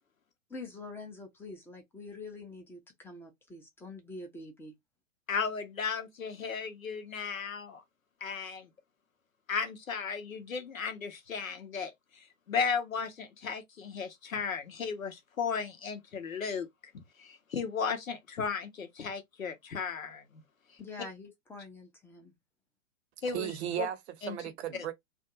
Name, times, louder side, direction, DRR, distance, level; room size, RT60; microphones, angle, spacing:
voice 1, 0.5-4.7 20.8-22.3, left 3 dB, 5° left, 0.5 m, -45 dB
voice 2, 5.3-7.8 8.2-8.7 9.5-11.9 12.5-16.7 16.9-20.2 23.2-23.5 23.8-23.9 24.2-24.4, left 6 dB, 90° left, 0.8 m, -35 dB
voice 3, 23.3-24.9, right 11 dB, 55° right, 0.7 m, -35 dB
2.5 x 2.2 x 2.8 m
hypercardioid pair, 110°, 39 cm